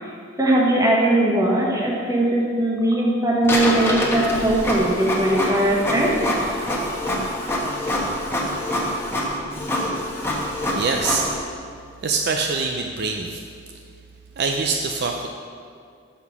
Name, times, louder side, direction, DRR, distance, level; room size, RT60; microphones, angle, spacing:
voice 1, 0.4-6.1, right 1 dB, 20° right, -3 dB, 1.2 m, -20 dB
Printer, 3.4-11.4, left 1 dB, 15° left, 1.0 m, -25 dB
voice 2, 10.8-11.3 12.0-13.4 14.4-15.3, right 4 dB, 60° right, 3 dB, 0.4 m, -24 dB
6.2 x 5.5 x 5.9 m, 2.3 s
head